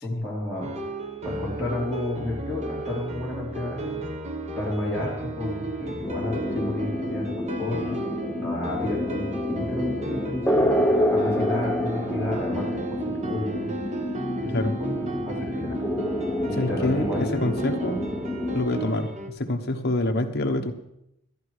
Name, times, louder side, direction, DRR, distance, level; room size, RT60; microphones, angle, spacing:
voice 1, 0.0-0.7 1.2-4.0 4.5-8.0 8.4-10.7 11.1-13.7 14.4-15.8 16.4-17.4 17.8-18.0, left 1 dB, 10° right, -6 dB, 3.3 m, -31 dB
sound 1, 0.6-19.3, right 2 dB, 30° right, 1.1 m, -35 dB
sound 2, 6.0-18.6, left 1 dB, 10° left, 0.8 m, -28 dB
voice 2, 16.6-18.0 18.5-20.7, left 1 dB, 50° left, 4 dB, 1.2 m, -26 dB
13.5 x 10.5 x 4.8 m, 0.81 s
head